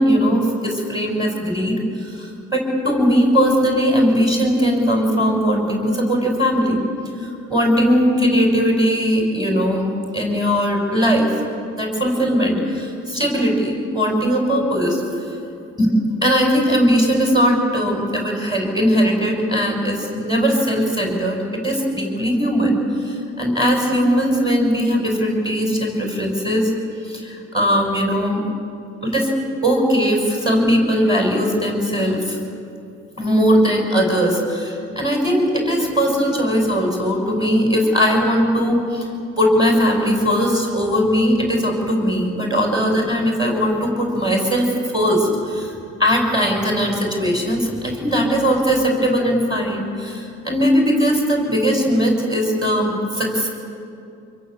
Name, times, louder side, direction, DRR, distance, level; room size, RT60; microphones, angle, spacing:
voice 1, 0.0-6.8 7.2-11.3 11.7-15.0 15.8-26.7 27.0-28.5 29.0-29.3 29.6-32.4 33.2-39.1 39.4-45.7 46.0-53.5, equal, 15° right, 0 dB, 6.7 m, -19 dB
26.5 x 22.5 x 8.1 m, 2.6 s
cardioid pair, 90°, 30 cm